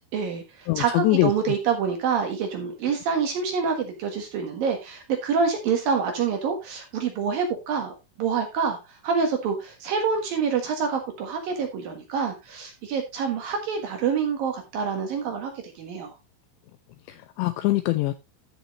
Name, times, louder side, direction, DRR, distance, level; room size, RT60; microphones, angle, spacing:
voice 1, 0.1-15.5 15.8-16.1, right 6 dB, 60° right, 4 dB, 2.7 m, -27 dB
voice 2, 0.7-1.3 17.1-18.1, left 18 dB, 85° left, 11 dB, 2.5 m, -23 dB
14.0 x 6.3 x 3.0 m, 0.23 s
omnidirectional pair, 5.5 m